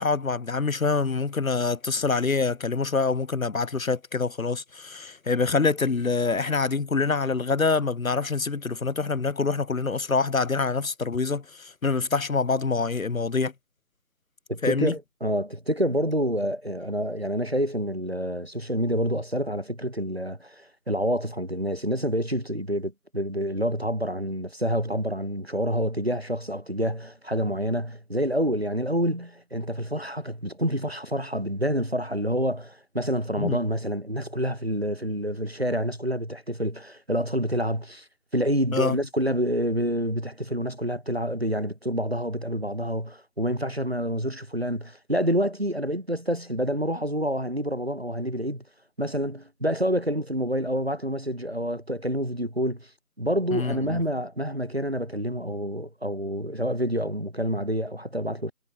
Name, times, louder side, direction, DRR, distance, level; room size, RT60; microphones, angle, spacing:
voice 1, 0.0-13.5 14.6-14.9 33.4-33.6 38.7-39.0 53.5-54.0, left 4 dB, 65° left, 0.7 m, -25 dB
voice 2, 14.5-38.0 38.3-48.6 49.0-52.9 53.2-58.5, equal, 45° right, 1.0 m, -28 dB
figure-of-eight pair, 175°, 45 cm